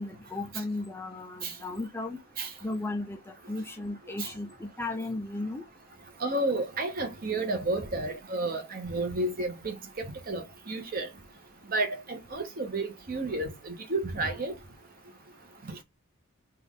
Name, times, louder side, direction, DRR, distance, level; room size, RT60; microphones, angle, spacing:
voice 1, 0.0-2.2 2.6-5.6, left 2 dB, 10° left, 0.4 m, -35 dB
voice 2, 6.2-11.1 11.7-14.5, right 2 dB, 40° right, 0.8 m, -31 dB
3.3 x 2.3 x 3.5 m
head